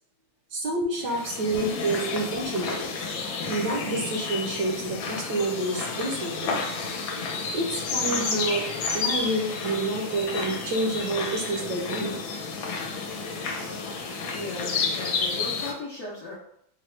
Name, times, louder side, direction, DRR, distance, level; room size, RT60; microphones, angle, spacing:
voice 1, 0.5-2.9 3.5-6.5 7.5-8.7 8.9-12.1, right 2 dB, 70° right, 1 dB, 1.1 m, -28 dB
sound 1, 1.0-15.7, left 4 dB, 80° left, 1.4 m, -31 dB
voice 2, 14.2-16.4, left 2 dB, 65° left, -5 dB, 0.8 m, -37 dB
4.6 x 2.1 x 3.1 m, 0.72 s
omnidirectional pair, 2.1 m